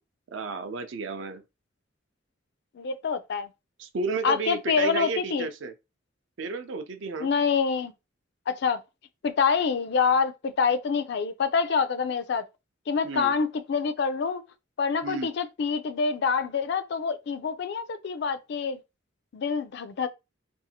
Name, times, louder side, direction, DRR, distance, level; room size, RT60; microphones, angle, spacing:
voice 1, 0.3-1.4 3.8-5.7 6.4-7.3 13.0-13.3 15.0-15.3, right 4 dB, 70° right, 0.4 m, -32 dB
voice 2, 2.8-3.5 4.2-5.5 7.2-7.9 8.5-8.8 9.2-12.4 12.9-14.4 14.8-18.8 19.3-20.1, left 5 dB, 55° left, 0.3 m, -26 dB
2.6 x 2.4 x 2.7 m
head